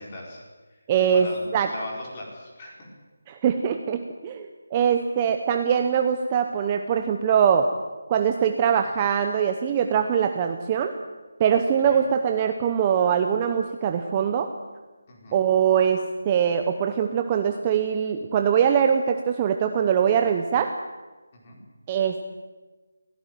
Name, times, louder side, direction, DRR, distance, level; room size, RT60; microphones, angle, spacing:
voice 1, 0.0-0.8 1.1-2.9 4.8-4.9 11.8-12.1 15.1-15.5 21.3-21.6, left 1 dB, 20° left, -1 dB, 4.7 m, -40 dB
voice 2, 0.9-1.3 1.5-1.7 3.3-7.7 8.1-10.9 11.4-14.5 15.3-20.7 21.9-22.2, right 8 dB, 15° right, 6 dB, 0.8 m, -22 dB
22.5 x 16.5 x 9.2 m, 1.3 s
figure-of-eight pair, 175°, 0 cm